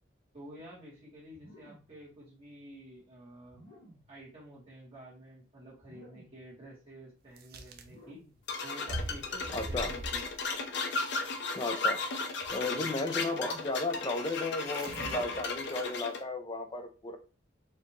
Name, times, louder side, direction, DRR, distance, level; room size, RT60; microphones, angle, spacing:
voice 1, 0.3-3.6 4.1-8.2 8.6-10.3 12.5-12.9, right 1 dB, 35° right, 1.3 m, -50 dB
sound 1, 1.3-2.0 3.5-4.2 5.8-6.5 7.8-8.5 10.0-10.4 11.8-12.3 13.5-13.8 14.9-15.6, equal, 50° left, 1.6 m, -57 dB
sound 2, 7.4-7.9 8.9-10.4 12.4-12.6 14.6-15.5, right 1 dB, 55° right, 0.6 m, -41 dB
sound 3, 8.5-16.2, left 3 dB, 65° left, 0.7 m, -35 dB
voice 2, 9.5-9.9 11.6-12.0 12.5-17.2, left 2 dB, 25° left, 0.5 m, -34 dB
4.4 x 2.5 x 2.9 m
head